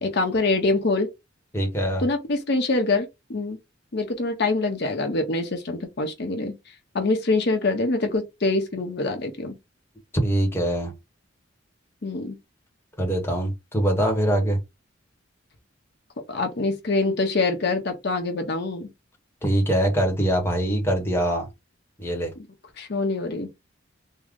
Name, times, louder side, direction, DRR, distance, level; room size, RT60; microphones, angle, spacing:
voice 1, 0.0-1.1 2.0-3.6 3.9-6.5 6.9-9.5 12.0-12.3 16.3-18.9 22.8-23.5, left 3 dB, 55° left, 0.7 m, -25 dB
voice 2, 1.5-2.0 10.2-10.9 13.0-14.6 19.4-21.5 22.0-22.3, right 1 dB, 10° left, 0.9 m, -23 dB
3.6 x 2.1 x 3.5 m
head